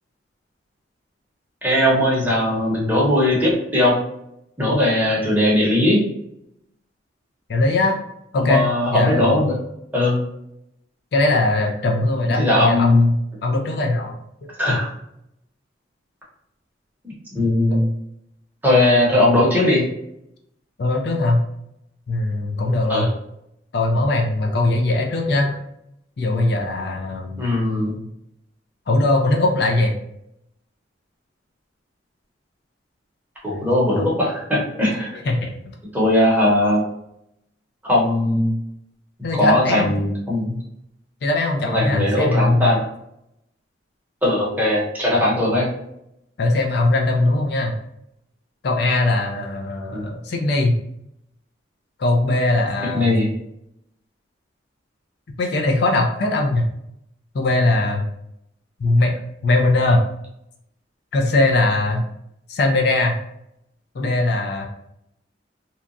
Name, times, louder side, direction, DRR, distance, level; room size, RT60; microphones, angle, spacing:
voice 1, 1.6-4.0 4.6-6.0 8.4-9.6 9.9-10.2 12.0-12.1 12.4-13.0 14.6-14.9 17.3-17.9 18.6-19.8 22.9-23.1 27.4-28.0 33.4-35.1 35.9-36.8 37.8-38.5 39.3-40.6 41.6-42.8 44.2-45.7 49.9-50.0 52.9-53.3, left 1 dB, 10° right, -5 dB, 0.8 m, -19 dB
voice 2, 7.5-8.0 8.3-9.5 11.1-14.1 14.4-14.5 17.7-17.8 20.8-21.4 22.1-23.1 23.7-25.6 26.2-27.4 28.9-29.9 33.5-33.7 35.2-35.6 39.2-39.9 41.2-42.7 46.4-47.7 48.6-50.8 52.0-53.1 55.4-56.6 57.3-58.0 58.8-59.1 59.4-60.0 61.1-62.0 62.5-63.2 63.9-64.7, left 2 dB, 60° left, 1 dB, 0.4 m, -20 dB
2.8 x 2.2 x 2.5 m, 0.79 s
head